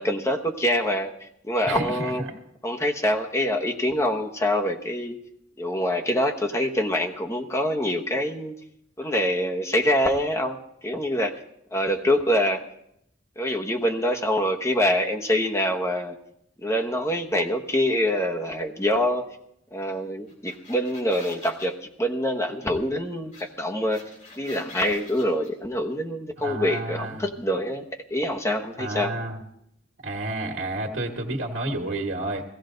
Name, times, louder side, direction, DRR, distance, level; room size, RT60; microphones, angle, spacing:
voice 1, 0.0-2.2 2.6-5.2 5.6-8.5 9.0-11.4 11.7-12.6 13.4-16.2 16.6-19.3 19.7-24.0 24.4-29.1, equal, 15° left, 3 dB, 1.1 m, -25 dB
voice 2, 1.6-2.1 26.4-27.3 28.8-29.4 30.0-32.4, right 2 dB, 80° right, 1 dB, 1.6 m, -30 dB
sound 1, 20.3-21.7 23.3-23.4 23.7-25.5, left 2 dB, 40° left, 3.6 m, -45 dB
16.5 x 15.5 x 3.9 m, 0.75 s
head